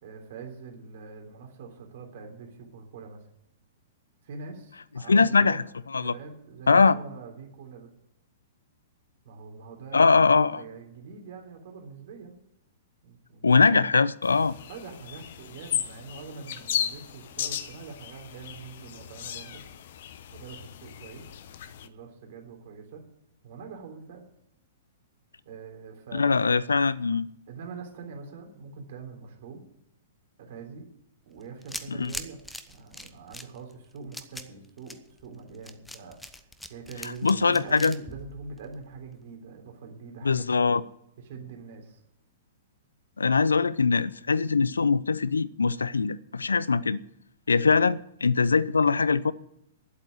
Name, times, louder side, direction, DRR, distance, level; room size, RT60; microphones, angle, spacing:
voice 1, 0.0-3.2 4.2-5.6 6.0-7.9 9.2-12.3 13.0-13.8 14.6-19.7 20.3-21.3 21.8-23.1 23.4-24.2 25.5-26.6 27.5-29.6 30.4-30.9 31.3-32.4 32.7-40.5 41.2-42.0, right 4 dB, 55° right, 3.5 m, -44 dB
voice 2, 5.1-5.6 5.9-6.1 6.7-6.9 9.9-10.6 13.4-14.5 26.1-27.3 31.9-32.1 37.2-37.9 40.2-40.8 43.2-47.0 47.5-49.3, left 4 dB, 80° left, 0.5 m, -22 dB
sound 1, 14.2-21.9, left 10 dB, 55° left, 0.9 m, -36 dB
sound 2, 31.4-39.1, left 1 dB, 5° left, 0.9 m, -42 dB
11.0 x 8.1 x 9.3 m
figure-of-eight pair, 110°, 0 cm